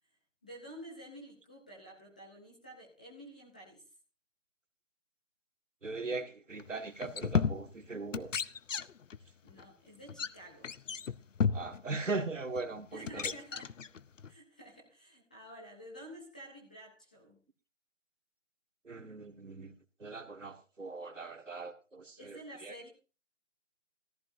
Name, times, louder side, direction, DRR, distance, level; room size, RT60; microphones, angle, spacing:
voice 1, 0.4-3.8 9.4-10.7 12.9-13.7 14.3-17.4 22.2-22.9, right 1 dB, 5° left, -3 dB, 0.6 m, -50 dB
voice 2, 5.8-8.3 11.5-13.3 18.8-19.7 20.0-22.9, right 3 dB, 85° right, 5 dB, 1.9 m, -40 dB
sound 1, 6.6-6.7 7.0-7.9 8.1-9.2 9.5-9.6 10.1-10.3 10.6-11.8 12.6-12.7 13.0-14.3, left 6 dB, 85° left, 0.7 m, -33 dB
14.5 x 13.0 x 2.7 m, 0.33 s
figure-of-eight pair, 150°, 37 cm